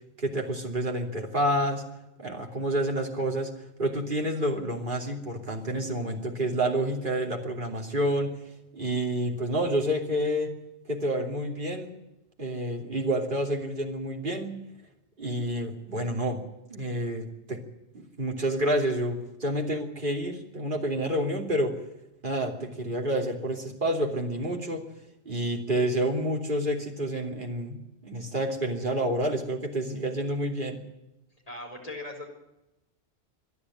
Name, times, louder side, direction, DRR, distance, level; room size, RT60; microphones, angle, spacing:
voice 1, 0.2-1.8 2.2-8.3 8.7-10.5 10.9-11.9 12.4-14.5 15.2-16.4 16.7-17.6 17.9-21.8 22.2-24.8 25.2-30.8, right 1 dB, 50° right, 2 dB, 3.2 m, -29 dB
voice 2, 31.5-32.3, left 2 dB, 35° left, 2 dB, 4.5 m, -39 dB
25.5 x 10.5 x 9.8 m, 0.95 s
omnidirectional pair, 1.1 m